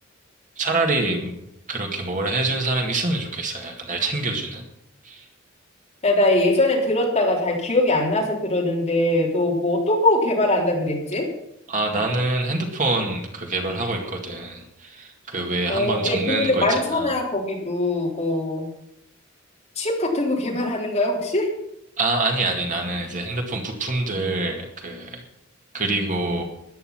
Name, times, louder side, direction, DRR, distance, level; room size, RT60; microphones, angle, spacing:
voice 1, 0.6-1.3 1.7-4.6 5.0-5.2 11.7-17.1 22.0-25.2 25.7-26.4, right 2 dB, 40° right, 2 dB, 2.0 m, -25 dB
voice 2, 6.0-11.3 15.7-18.7 19.8-21.5, left 1 dB, 35° left, -2 dB, 3.8 m, -22 dB
14.0 x 11.0 x 5.9 m, 0.80 s
head